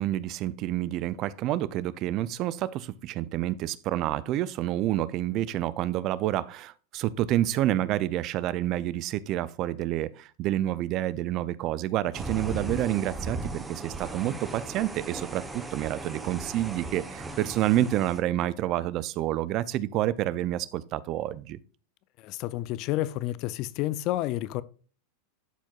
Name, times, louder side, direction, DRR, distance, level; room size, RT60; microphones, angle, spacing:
voice 1, 0.0-21.6, right 13 dB, 45° right, 0.4 m, -28 dB
sound 1, 12.1-18.2, right 2 dB, 10° right, 0.9 m, -37 dB
voice 2, 22.2-24.6, left 15 dB, 45° left, 0.4 m, -30 dB
12.0 x 4.5 x 2.4 m
supercardioid pair, 130°, 0 cm